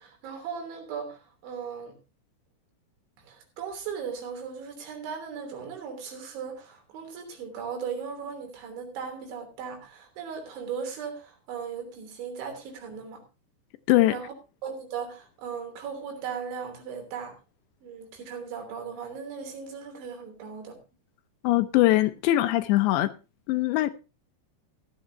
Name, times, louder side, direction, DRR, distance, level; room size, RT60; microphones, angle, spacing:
voice 1, 0.0-2.0 3.2-13.2 14.1-14.3 14.6-17.3 17.8-20.8, right 6 dB, 75° right, 5.5 m, -37 dB
voice 2, 21.4-23.1 23.5-23.9, left 16 dB, 80° left, 2.8 m, -21 dB
15.5 x 12.0 x 2.8 m
omnidirectional pair, 5.4 m